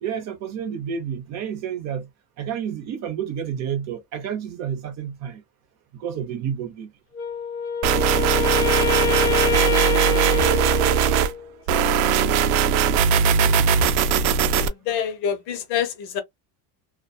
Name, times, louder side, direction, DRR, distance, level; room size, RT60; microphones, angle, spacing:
voice 1, 0.0-2.1 2.4-5.4 5.9-6.9, right 8 dB, 35° right, 0.5 m, -31 dB
Wind instrument woodwind instrument, 7.1-11.5, left 7 dB, 30° left, 0.7 m, -25 dB
sound 1, 7.8-11.3 11.7-14.7, right 7 dB, 80° right, 0.6 m, -19 dB
voice 2, 9.0-9.9 11.7-12.4 12.6-13.1 13.4-13.7 14.5-16.2, left 8 dB, 60° left, 0.9 m, -30 dB
2.6 x 2.3 x 2.2 m
cardioid pair, 165°, 47 cm